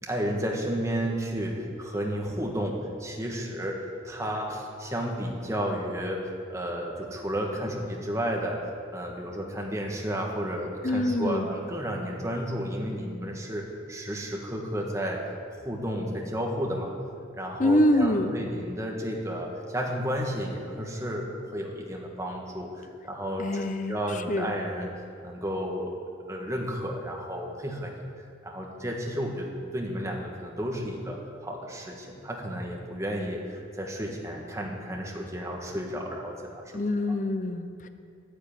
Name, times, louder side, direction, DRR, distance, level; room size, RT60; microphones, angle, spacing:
voice 1, 0.0-8.6 8.9-15.3 15.6-16.9 17.3-24.9 25.2-25.9 26.3-28.0 28.4-36.8, equal, 15° right, -1 dB, 1.6 m, -32 dB
voice 2, 10.8-11.5 17.6-18.4 23.4-24.0 24.3-24.5 36.7-37.9, left 1 dB, 40° left, 8 dB, 0.8 m, -25 dB
10.5 x 10.0 x 8.8 m, 2.4 s
head